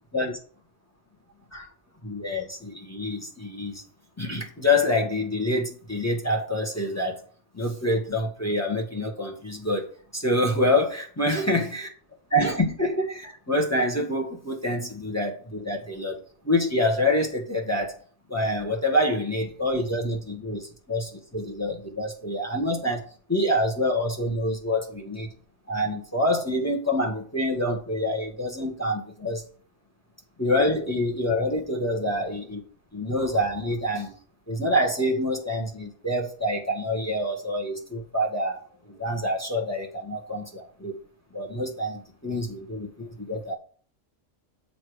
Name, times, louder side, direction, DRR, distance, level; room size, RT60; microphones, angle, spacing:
voice 1, 2.0-3.8 4.2-7.2 7.5-11.9 12.3-17.9 18.3-25.3 25.7-29.4 30.4-32.6 32.9-34.1 34.5-41.0 41.3-43.5, left 1 dB, 10° left, 0 dB, 1.6 m, -26 dB
7.1 x 5.2 x 5.0 m, 0.43 s
omnidirectional pair, 1.4 m